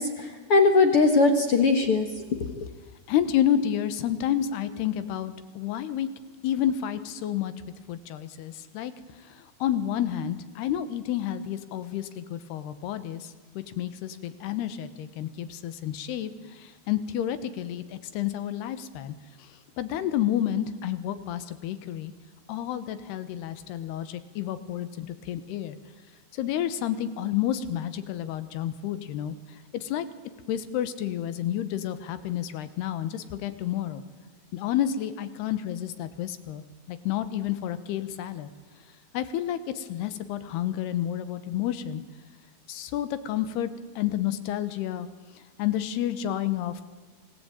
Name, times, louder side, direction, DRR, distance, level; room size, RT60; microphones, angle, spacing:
voice 1, 0.0-2.2 2.6-2.7, left 3 dB, 60° left, 6 dB, 1.4 m, -21 dB
voice 2, 3.1-6.1 6.4-7.5 7.9-22.1 22.5-25.8 26.3-30.1 30.5-34.0 34.5-38.5 39.1-42.0 42.7-43.7 44.0-45.1 45.4-46.8, left 11 dB, 80° left, 12 dB, 3.2 m, -30 dB
25.5 x 18.0 x 9.0 m, 1.5 s
omnidirectional pair, 4.8 m